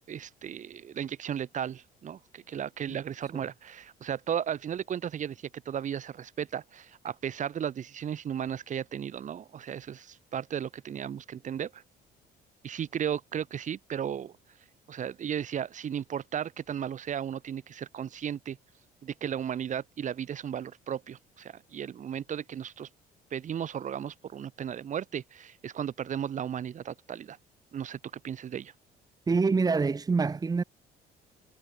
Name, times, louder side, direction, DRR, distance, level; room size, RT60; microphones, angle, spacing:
voice 1, 0.1-11.8 12.6-14.3 14.9-18.6 19.0-22.9 23.3-27.4 27.7-28.0 28.2-28.7, right 9 dB, 45° right, 2.6 m, -35 dB
voice 2, 29.3-30.6, right 4 dB, 20° right, 1.4 m, -26 dB
cardioid pair, 110°, 17 cm